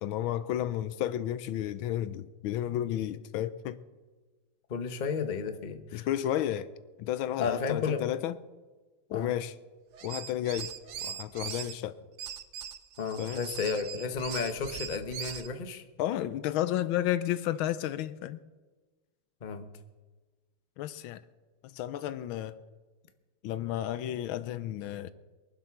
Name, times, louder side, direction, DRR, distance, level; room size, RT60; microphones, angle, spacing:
voice 1, 0.0-3.8 5.9-6.7 7.0-8.3 9.1-9.5 10.0-10.7 11.0-12.0 13.2-13.4 16.0-18.4 20.8-21.2 21.6-22.6 23.4-25.1, left 12 dB, 80° left, 1.4 m, -32 dB
voice 2, 4.7-6.1 7.4-8.0 9.1-9.3 13.0-15.8 19.4-19.7, left 5 dB, 35° left, 0.7 m, -33 dB
sound 1, 9.9-11.7 12.2-15.5, right 8 dB, 75° right, 0.6 m, -40 dB
22.5 x 7.7 x 5.9 m
omnidirectional pair, 2.3 m